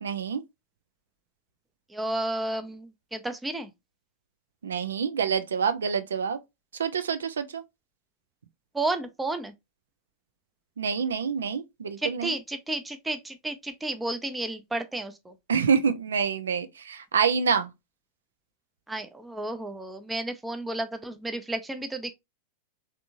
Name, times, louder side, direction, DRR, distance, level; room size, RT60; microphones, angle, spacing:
voice 1, 0.0-0.4 4.6-6.4 6.8-7.6 10.8-12.3 15.5-17.7, right 6 dB, 70° right, 0.3 m, -27 dB
voice 2, 1.9-3.7 8.7-9.5 12.0-15.3 18.9-22.1, right 2 dB, 10° right, 0.4 m, -32 dB
3.4 x 2.5 x 2.7 m
figure-of-eight pair, 90°, 0 cm